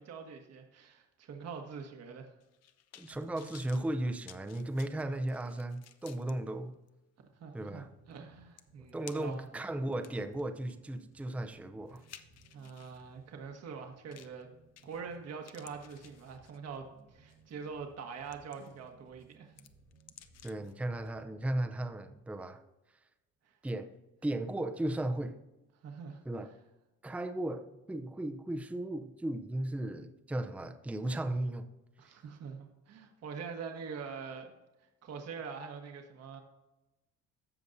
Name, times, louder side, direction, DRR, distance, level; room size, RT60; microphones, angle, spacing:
voice 1, 0.0-2.3 7.4-9.5 12.5-14.5 14.8-19.5 23.4-23.5 25.8-26.2 32.0-34.5 35.0-36.4, right 5 dB, 55° right, 3 dB, 1.3 m, -44 dB
sound 1, 2.4-6.3 6.9-7.0 8.2-8.3 8.6-9.5 9.9-13.0 14.1-14.4 14.8-15.2 15.4-16.8 17.3-17.5 18.0-18.9 19.2-20.7 21.0-21.1, left 10 dB, 60° left, 0.7 m, -56 dB
voice 2, 3.0-6.8 7.5-7.9 8.8-12.0 20.4-22.6 23.6-23.9 24.2-25.4 26.3-26.5 27.0-31.7 32.0-32.2, right 1 dB, 5° right, 7 dB, 0.6 m, -36 dB
sound 2, 7.7-22.2, right 3 dB, 85° right, 1.6 m, -62 dB
15.0 x 5.3 x 2.7 m, 1.0 s
cardioid pair, 95°, 29 cm